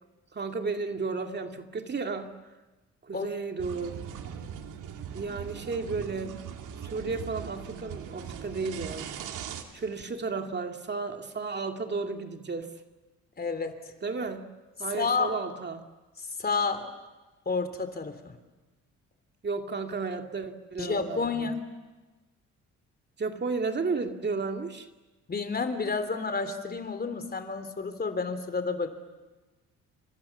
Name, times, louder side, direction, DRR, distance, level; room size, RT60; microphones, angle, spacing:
voice 1, 0.3-2.3 3.1-4.0 5.1-6.3 6.8-9.1 9.7-12.7 14.0-14.4 14.8-15.8 19.4-21.5 23.2-24.9, right 4 dB, 35° right, 5 dB, 2.3 m, -33 dB
sound 1, 3.6-9.6, right 8 dB, 90° right, 2.7 m, -40 dB
voice 2, 13.4-13.8 14.9-15.4 16.4-16.9 17.4-18.3 20.8-21.6 25.3-28.9, left 4 dB, 30° left, 9 dB, 3.3 m, -30 dB
30.0 x 27.0 x 7.3 m, 1.2 s
cardioid pair, 90°, 30 cm